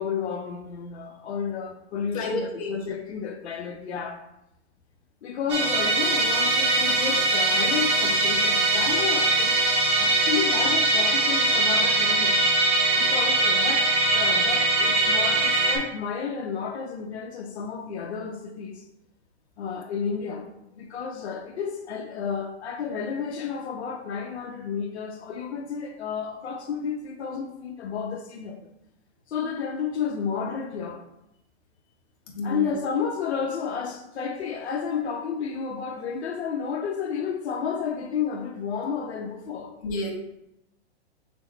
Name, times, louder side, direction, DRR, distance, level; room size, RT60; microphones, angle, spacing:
voice 1, 0.0-4.2 5.2-9.6 10.0-12.4 12.9-18.8 19.6-28.6 29.3-31.0 32.4-39.7, left 6 dB, 75° left, 0.7 m, -31 dB
voice 2, 2.1-2.8 32.3-32.7 39.8-40.1, left 1 dB, 35° left, 0.9 m, -30 dB
Musical instrument, 5.5-15.8, right 2 dB, 25° right, 0.7 m, -22 dB
6.0 x 2.0 x 4.3 m
hypercardioid pair, 170°, 33 cm